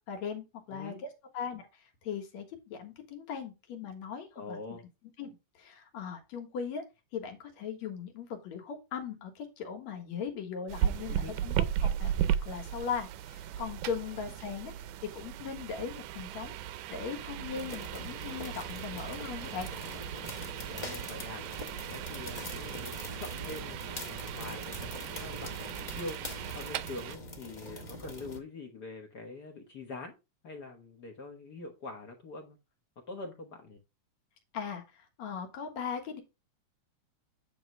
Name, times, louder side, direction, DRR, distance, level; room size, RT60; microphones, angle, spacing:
voice 1, 0.1-1.0 1.3-4.6 5.2-5.3 5.6-6.8 7.1-14.7 15.0-16.5 16.9-19.7 34.5-36.2, left 6 dB, 70° left, 4 dB, 2.7 m, -39 dB
voice 2, 0.7-1.0 4.3-4.8 11.1-11.4 20.7-21.5 21.9-25.6 25.9-26.2 26.5-30.2 30.4-32.6 33.1-33.8, left 3 dB, 55° left, 3 dB, 1.2 m, -44 dB
sound 1, 10.7-27.2, right 10 dB, 80° right, 1.9 m, -36 dB
sound 2, 17.5-28.4, equal, 35° left, 0.7 m, -43 dB
9.3 x 3.1 x 5.4 m, 0.26 s
omnidirectional pair, 3.4 m